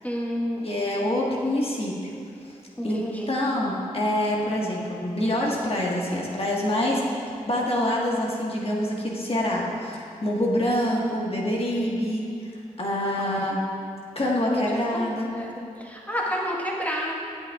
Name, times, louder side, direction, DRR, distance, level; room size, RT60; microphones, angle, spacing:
voice 1, 0.0-0.7 2.8-3.3 13.2-13.4 14.4-14.8 15.2-15.5 15.8-17.1, equal, 10° left, -3 dB, 1.5 m, -30 dB
voice 2, 0.6-1.9 2.4-2.6 2.8-12.2 12.8-13.6 14.1-15.3, left 1 dB, 45° left, -3 dB, 1.5 m, -26 dB
8.3 x 8.2 x 2.4 m, 2.5 s
cardioid pair, 40°, 14 cm